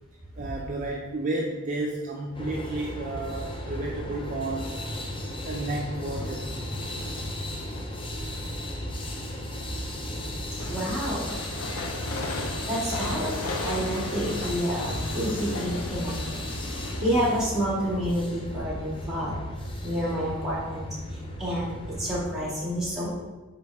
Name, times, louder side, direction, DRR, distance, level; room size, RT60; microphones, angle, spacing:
voice 1, 0.4-4.7 5.5-6.5, right 2 dB, 35° right, -2 dB, 0.5 m, -32 dB
sound 1, 2.3-22.3, left 1 dB, 25° left, 0.6 m, -35 dB
Train, 10.6-17.1, left 2 dB, 80° left, 0.7 m, -36 dB
voice 2, 10.7-11.3 12.6-19.3 19.8-20.9 21.1-23.1, equal, ahead, -10 dB, 2.2 m, -29 dB
7.8 x 4.3 x 3.5 m, 1.2 s
head